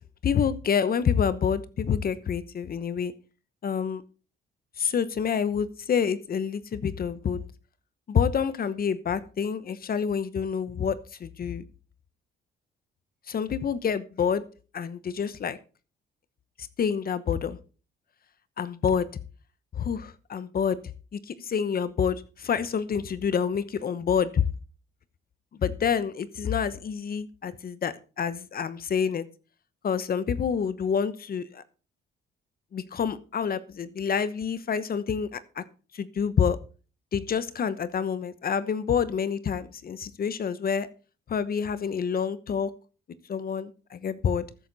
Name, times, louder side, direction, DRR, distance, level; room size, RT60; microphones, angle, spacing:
voice 1, 0.2-3.1 3.6-4.0 4.8-7.4 8.1-11.6 13.3-14.4 14.7-15.6 16.6-17.6 18.6-19.1 19.7-20.8 21.1-24.5 25.6-29.2 29.8-31.6 32.7-35.6 35.9-36.6 37.1-40.9 41.3-42.7 43.3-44.5, left 7 dB, 50° left, 15 dB, 1.0 m, -27 dB
13.0 x 9.8 x 4.1 m, 0.36 s
cardioid pair, 90°, 20 cm